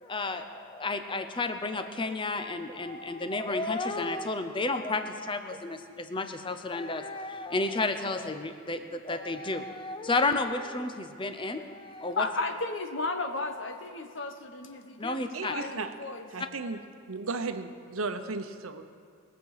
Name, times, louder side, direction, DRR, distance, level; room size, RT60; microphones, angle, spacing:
voice 1, 0.0-12.3 15.0-15.6, left 3 dB, 25° left, 0.7 m, -32 dB
voice 2, 12.2-16.3, left 3 dB, 60° left, 1.0 m, -34 dB
voice 3, 15.3-15.9 16.3-16.8 17.1-18.9, right 3 dB, 85° right, 0.9 m, -35 dB
22.0 x 7.5 x 5.7 m
head